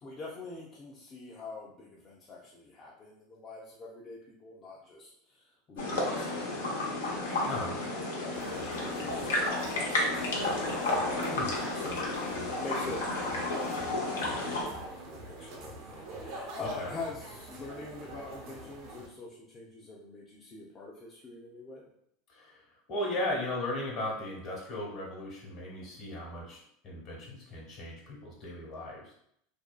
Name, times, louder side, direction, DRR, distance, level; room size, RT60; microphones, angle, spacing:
voice 1, 0.0-6.5 7.3-12.1 12.5-13.1 14.1-21.9, left 3 dB, 35° left, -4 dB, 0.5 m, -45 dB
sound 1, 5.8-14.6, left 2 dB, 85° left, 0.7 m, -32 dB
voice 2, 7.4-7.8 11.3-11.6 16.6-16.9 22.3-22.6 22.9-29.1, left 1 dB, 50° left, -3 dB, 1.1 m, -36 dB
sound 2, 8.3-19.1, right 2 dB, 65° right, 0.6 m, -45 dB
2.6 x 2.3 x 2.2 m, 0.71 s
hypercardioid pair, 95°, 0 cm